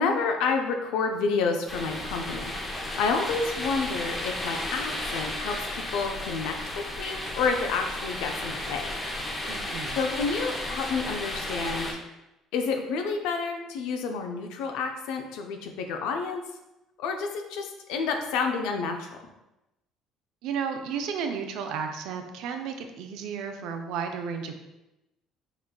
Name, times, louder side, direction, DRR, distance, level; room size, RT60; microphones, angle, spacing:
voice 1, 0.0-2.4 2.9-6.5 7.0-8.9 10.0-12.0 12.5-16.4 17.0-19.2, left 4 dB, 80° left, 4 dB, 0.4 m, -29 dB
sound 1, 1.7-11.9, left 1 dB, 20° left, 0.6 m, -33 dB
voice 2, 9.5-10.0 20.4-24.5, right 6 dB, 75° right, 5 dB, 0.4 m, -33 dB
4.9 x 2.2 x 2.3 m, 0.94 s
supercardioid pair, 95°, 0 cm